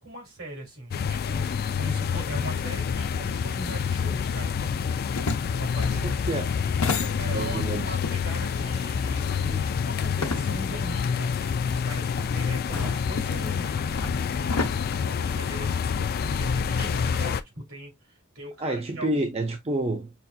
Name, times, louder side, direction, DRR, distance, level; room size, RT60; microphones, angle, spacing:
voice 1, 0.0-4.9 5.6-6.2 7.1-13.7 14.3-19.1, right 1 dB, 80° right, 3.1 m, -40 dB
sound 1, 0.9-17.4, left 6 dB, 45° left, 0.3 m, -27 dB
sound 2, 4.9-7.7 8.0-10.9 11.2-11.3 12.2-15.8, left 4 dB, 70° left, 0.8 m, -33 dB
voice 2, 6.0-6.5 7.3-8.0 12.7-12.9 18.6-20.1, right 1 dB, 30° right, 0.6 m, -29 dB
5.7 x 2.5 x 2.4 m
head